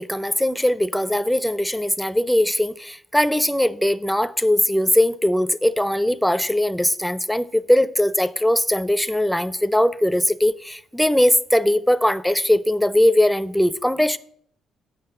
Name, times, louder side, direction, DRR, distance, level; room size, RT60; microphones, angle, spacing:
voice 1, 0.0-14.2, left 1 dB, 5° left, 0.5 m, -20 dB
8.7 x 5.3 x 7.7 m
cardioid pair, 90°, 0 cm